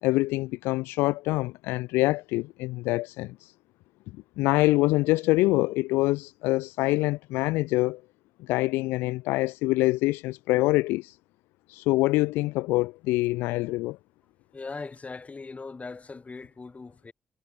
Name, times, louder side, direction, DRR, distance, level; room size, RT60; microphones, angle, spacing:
voice 1, 0.0-3.3 4.4-8.0 8.4-11.1 11.7-14.0, left 20 dB, 85° left, 1.3 m, -25 dB
voice 2, 14.5-17.1, left 4 dB, 40° left, 4.7 m, -40 dB
hypercardioid pair, 45°, 4 cm